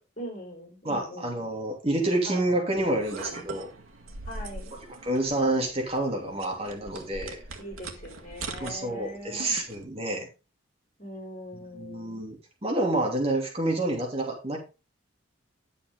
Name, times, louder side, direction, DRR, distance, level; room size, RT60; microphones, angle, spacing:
voice 1, 0.2-1.4 2.3-2.5 4.3-4.7 7.6-9.5 11.0-12.3, equal, 40° left, 2 dB, 4.2 m, -41 dB
voice 2, 0.8-3.7 5.0-7.4 8.6-10.3 11.7-14.6, right 1 dB, 30° right, 1 dB, 2.9 m, -28 dB
sound 1, 2.7-9.9, right 3 dB, 85° right, 1.8 m, -42 dB
10.5 x 8.4 x 3.7 m, 0.29 s
head